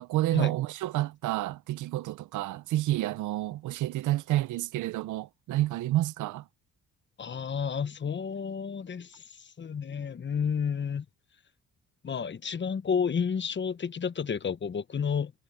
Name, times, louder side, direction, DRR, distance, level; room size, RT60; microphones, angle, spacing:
voice 1, 0.0-6.4, right 15 dB, 80° right, 0.7 m, -29 dB
voice 2, 7.2-9.2 9.6-11.0 12.0-15.3, left 6 dB, 40° left, 1.1 m, -31 dB
cardioid pair, 90°, 30 cm